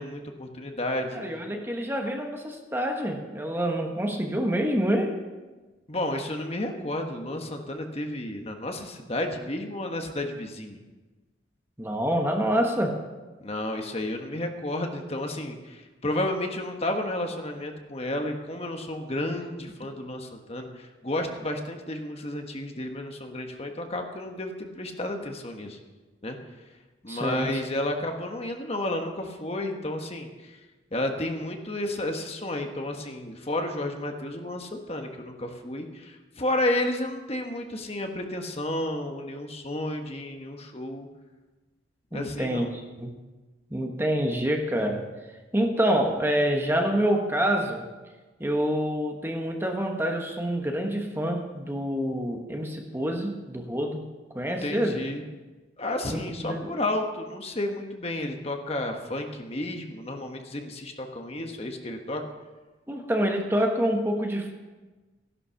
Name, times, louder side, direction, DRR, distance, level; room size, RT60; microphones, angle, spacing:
voice 1, 0.0-1.2 5.9-10.8 13.4-25.8 26.2-26.4 27.0-30.6 30.9-41.1 42.1-42.7 54.5-55.2 55.8-62.2, left 1 dB, 30° left, 4 dB, 1.4 m, -32 dB
voice 2, 1.1-5.2 11.8-13.0 27.1-27.6 42.1-43.1 43.7-45.0 45.5-47.9 48.4-54.0 54.3-55.0 56.1-56.7 62.9-64.5, equal, 10° right, 3 dB, 1.3 m, -27 dB
15.5 x 11.0 x 5.8 m, 1.2 s
head